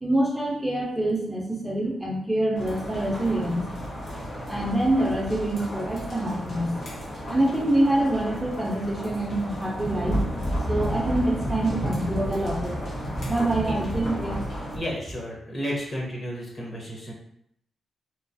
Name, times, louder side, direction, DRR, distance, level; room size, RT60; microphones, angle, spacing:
voice 1, 0.0-3.6 4.5-6.8 7.3-10.2 10.7-12.8 13.2-14.4, right 1 dB, 10° right, -3 dB, 0.6 m, -25 dB
sound 1, 2.5-14.8, equal, 70° left, 0.9 m, -32 dB
voice 2, 14.7-17.1, equal, 45° left, -3 dB, 1.0 m, -32 dB
3.0 x 2.0 x 2.6 m, 0.74 s
cardioid pair, 75°, 0 cm